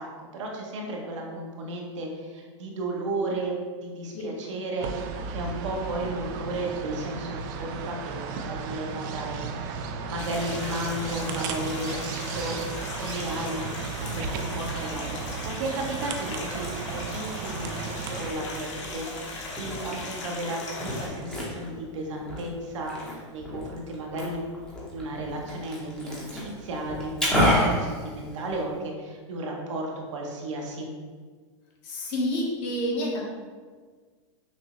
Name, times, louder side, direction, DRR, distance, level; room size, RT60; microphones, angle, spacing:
voice 1, 0.0-3.5 3.8-9.8 10.0-12.6 12.9-24.4 24.9-30.9, right 1 dB, 75° right, -1 dB, 0.9 m, -34 dB
sound 1, 4.8-18.3, right 5 dB, 40° right, 0.4 m, -35 dB
sound 2, 10.2-21.1, left 2 dB, 70° left, 1.0 m, -38 dB
Liquid, 17.8-28.8, equal, 5° left, 0.8 m, -31 dB
voice 2, 31.8-33.3, left 1 dB, 35° left, -3 dB, 1.0 m, -28 dB
6.0 x 2.0 x 3.0 m, 1.5 s
hypercardioid pair, 145°, 16 cm